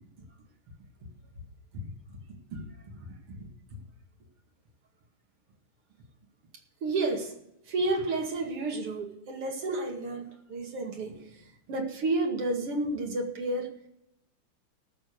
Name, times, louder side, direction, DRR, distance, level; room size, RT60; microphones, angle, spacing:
voice 1, 3.0-3.4 6.8-7.3 7.7-11.2 11.7-13.7, right 2 dB, 85° right, 1 dB, 3.1 m, -31 dB
17.5 x 7.0 x 6.4 m, 0.81 s
omnidirectional pair, 2.4 m